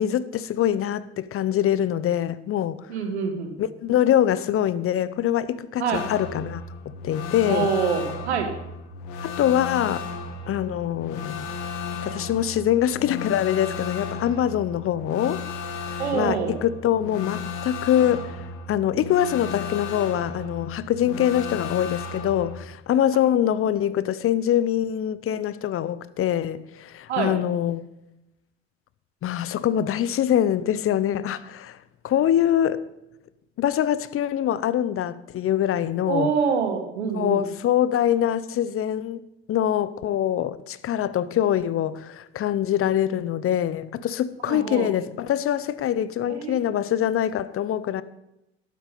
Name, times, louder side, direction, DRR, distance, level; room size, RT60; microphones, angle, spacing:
voice 1, 0.0-2.9 3.6-6.6 7.0-7.7 9.2-10.1 10.5-11.5 12.0-15.4 16.1-27.9 29.2-31.8 32.0-32.9 33.6-36.3 37.1-39.2 39.5-48.0, left 10 dB, 45° left, 0.7 m, -24 dB
voice 2, 2.9-3.6 5.8-6.0 7.5-8.5 16.0-16.5 27.1-27.3 36.1-37.4 44.5-44.9 46.3-46.6, right 6 dB, 85° right, 1.5 m, -25 dB
sound 1, 5.9-22.6, left 4 dB, 65° left, 1.6 m, -34 dB
11.5 x 8.4 x 5.2 m
hypercardioid pair, 60°, 32 cm